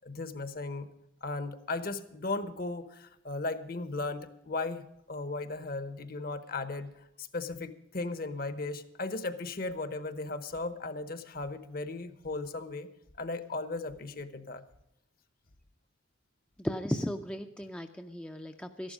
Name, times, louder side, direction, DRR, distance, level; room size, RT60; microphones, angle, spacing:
voice 1, 0.0-0.9 1.2-6.9 7.2-12.9 13.2-14.6, left 3 dB, 45° left, 12 dB, 0.9 m, -36 dB
voice 2, 16.6-18.9, equal, 5° left, 5 dB, 0.5 m, -35 dB
13.0 x 11.5 x 5.0 m, 0.85 s
head